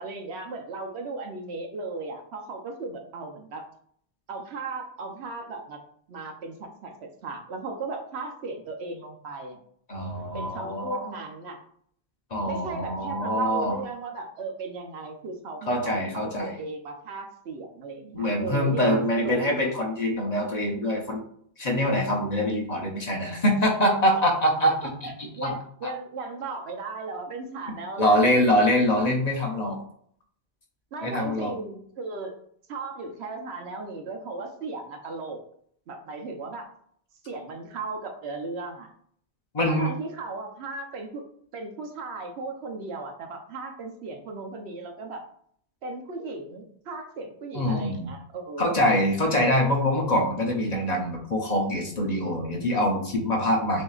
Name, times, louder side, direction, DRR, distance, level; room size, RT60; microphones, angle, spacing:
voice 1, 0.0-3.6 4.3-5.8 6.1-9.6 10.3-11.6 12.4-19.4 24.6-28.5 30.9-32.3 32.7-35.4 35.9-36.7 37.3-38.9 39.7-41.2 41.5-45.2 45.8-48.8, right 3 dB, 80° right, 4 dB, 1.0 m, -36 dB
voice 2, 9.9-11.1 12.3-13.8 15.7-16.6 18.1-21.2 21.6-24.7 25.0-25.1 25.4-25.5 25.8-25.9 28.0-29.8 31.0-31.5 39.5-39.9 47.5-48.1 48.6-53.8, left 1 dB, 45° left, 1 dB, 0.8 m, -24 dB
6.3 x 2.7 x 2.4 m, 0.63 s
omnidirectional pair, 1.1 m